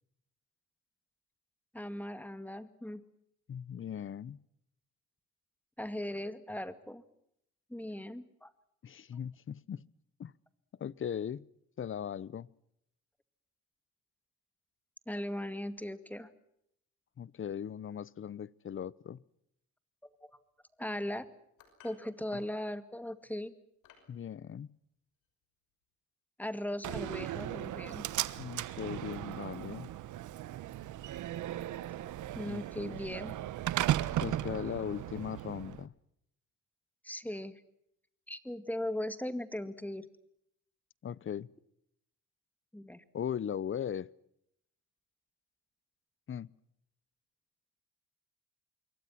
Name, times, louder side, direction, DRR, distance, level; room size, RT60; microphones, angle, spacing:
voice 1, 1.7-3.0 5.8-7.0 7.7-8.5 15.1-16.3 20.8-21.3 21.8-23.5 26.4-28.1 32.3-33.4 37.0-37.6 38.3-40.1 42.7-43.0, left 1 dB, 5° left, 2.2 m, -38 dB
voice 2, 3.5-4.4 8.8-9.9 10.2-10.3 10.8-11.5 11.8-12.5 17.2-19.2 24.1-24.7 28.4-29.9 32.4-33.0 34.2-35.9 41.0-41.5 43.1-44.1 46.3-46.5, left 8 dB, 40° left, 0.9 m, -38 dB
sound 1, 21.6-22.1 23.0-23.2 23.8-24.2, left 8 dB, 90° left, 6.1 m, -59 dB
Slam, 26.8-35.8, right 13 dB, 80° right, 1.2 m, -36 dB
27.0 x 23.0 x 5.9 m
cardioid pair, 90°, 30 cm